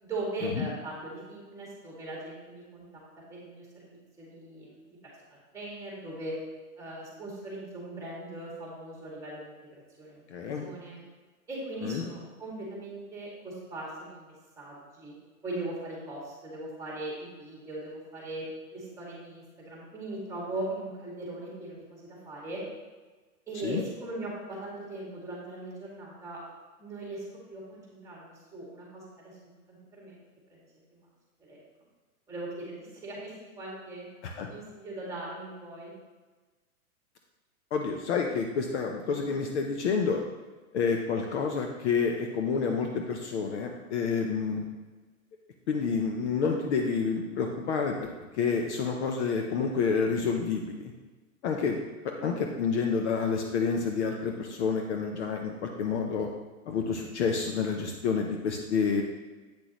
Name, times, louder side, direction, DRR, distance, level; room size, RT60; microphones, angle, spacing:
voice 1, 0.0-3.0 3.3-5.0 5.3-6.4 6.8-10.2 10.5-11.0 11.5-15.1 15.4-18.5 18.7-22.6 23.5-26.4 26.8-29.4 29.7-30.2 30.5-30.6 30.9-31.0 31.4-31.6 32.3-32.8 33.0-34.1 34.5-35.9, right 2 dB, 5° right, -4 dB, 2.2 m, -39 dB
voice 2, 10.3-10.7 11.8-12.1 23.6-23.8 34.2-34.5 37.7-40.2 40.7-44.6 45.7-48.1 48.4-50.9 51.4-51.8 52.0-56.3 56.7-59.0, left 5 dB, 50° left, 3 dB, 0.8 m, -29 dB
8.6 x 6.1 x 3.0 m, 1.3 s
hypercardioid pair, 130°, 45 cm